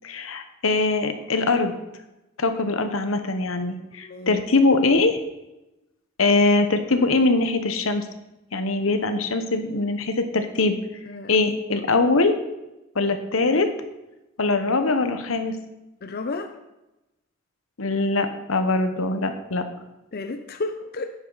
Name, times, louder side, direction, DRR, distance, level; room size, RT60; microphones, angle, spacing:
voice 1, 0.0-1.7 2.4-5.2 6.2-8.1 8.5-10.8 11.3-12.3 12.9-13.7 14.4-15.5 17.8-19.6, left 3 dB, 85° left, 8 dB, 1.0 m, -22 dB
voice 2, 4.0-4.4 11.1-11.3 16.0-16.5 20.1-21.1, left 3 dB, 50° left, 6 dB, 0.7 m, -32 dB
10.0 x 10.0 x 4.0 m, 0.96 s
head